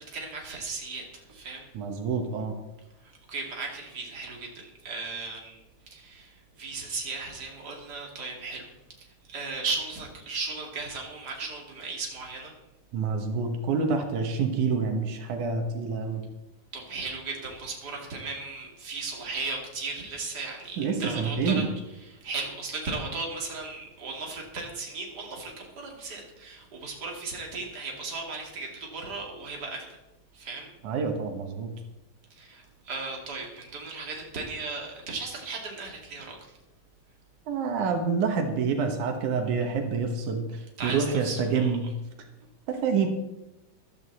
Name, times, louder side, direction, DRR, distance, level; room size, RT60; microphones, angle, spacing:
voice 1, 0.1-1.6 3.0-8.6 9.3-12.5 16.7-21.6 22.0-30.0 30.3-30.7 32.3-36.4 40.8-41.7, right 3 dB, 35° right, 0 dB, 3.1 m, -36 dB
voice 2, 1.7-2.6 12.9-16.2 20.8-21.7 30.8-31.7 37.5-41.9 42.7-43.1, right 5 dB, 80° right, 4 dB, 2.8 m, -27 dB
15.0 x 12.5 x 4.2 m, 0.98 s
omnidirectional pair, 3.4 m